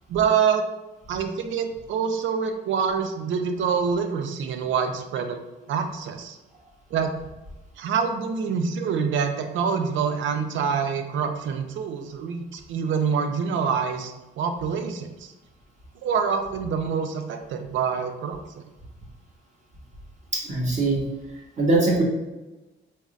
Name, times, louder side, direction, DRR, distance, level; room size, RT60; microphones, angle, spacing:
voice 1, 0.1-0.6 1.1-5.4 5.7-6.4 6.9-7.1 7.8-15.3 16.0-18.6, right 6 dB, 75° right, 7 dB, 0.5 m, -26 dB
voice 2, 20.3-21.0 21.6-22.0, right 2 dB, 35° right, -2 dB, 1.1 m, -21 dB
4.1 x 3.5 x 2.4 m, 1.0 s
cardioid pair, 90°, 20 cm